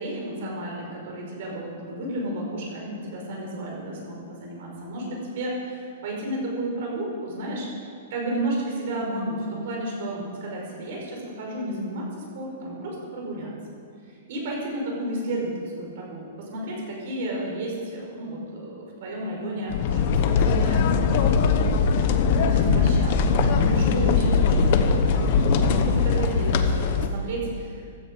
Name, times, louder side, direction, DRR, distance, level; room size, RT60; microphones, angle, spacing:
voice 1, 0.0-13.5 14.0-20.8 22.3-28.0, right 1 dB, 45° right, -1 dB, 5.0 m, -32 dB
sound 1, 19.7-27.1, left 5 dB, 40° left, 1.0 m, -21 dB
16.0 x 13.5 x 5.3 m, 2.3 s
hypercardioid pair, 175°, 0 cm